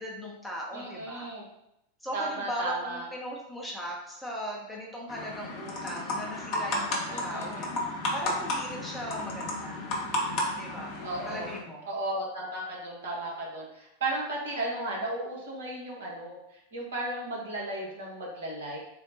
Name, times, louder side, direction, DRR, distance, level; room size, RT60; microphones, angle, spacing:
voice 1, 0.0-1.3 2.0-7.7 8.1-9.8 10.5-10.9 11.3-11.9, equal, ahead, -4 dB, 0.8 m, -38 dB
voice 2, 0.7-1.5 2.1-3.1 7.1-7.6 11.0-11.5 11.9-18.8, right 2 dB, 60° right, -3 dB, 1.2 m, -35 dB
sound 1, 5.1-11.6, left 1 dB, 40° left, 0.9 m, -33 dB
3.7 x 2.2 x 3.9 m, 0.82 s
figure-of-eight pair, 90°, 0 cm